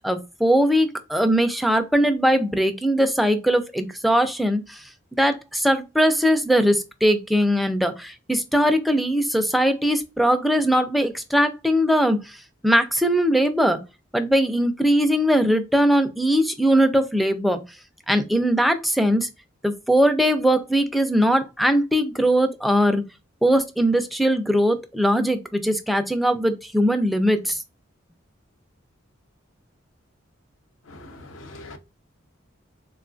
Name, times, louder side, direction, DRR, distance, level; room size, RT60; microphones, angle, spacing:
voice 1, 0.0-4.8 5.1-12.4 12.6-13.8 14.1-17.6 18.1-19.3 19.6-23.0 23.4-27.6, equal, ahead, 0.3 m, -20 dB
voice 2, 30.9-31.8, left 2 dB, 85° left, 0.6 m, -42 dB
3.6 x 2.3 x 2.4 m
head